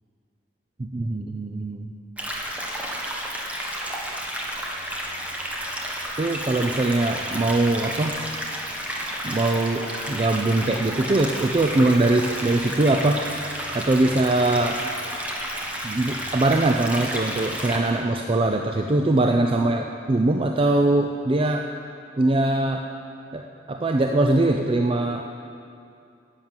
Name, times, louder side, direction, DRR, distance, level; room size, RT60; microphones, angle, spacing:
voice 1, 0.8-1.9 6.2-8.2 9.2-13.2 13.7-14.8 15.8-21.7 22.2-22.8 23.3-23.4 23.7-25.3, right 2 dB, 30° right, 3 dB, 0.5 m, -22 dB
sound 1, 2.2-17.8, equal, 10° right, 1.4 m, -31 dB
11.0 x 9.1 x 7.3 m, 2.6 s
head